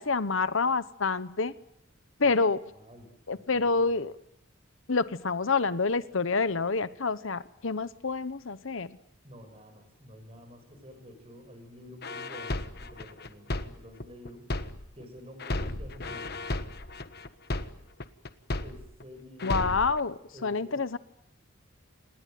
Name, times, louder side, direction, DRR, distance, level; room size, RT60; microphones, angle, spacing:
voice 1, 0.0-1.5 2.2-2.6 3.3-4.1 4.9-8.9 19.4-20.1 20.4-21.0, left 4 dB, 70° left, 15 dB, 1.0 m, -27 dB
voice 2, 2.7-4.0 9.2-14.5 14.9-16.4 18.6-19.7 20.3-20.8, left 1 dB, 30° right, 7 dB, 7.0 m, -50 dB
sound 1, 12.0-15.0 15.4-19.0 19.4-20.0, left 2 dB, 50° left, 1.4 m, -34 dB
28.0 x 20.5 x 9.3 m, 0.77 s
head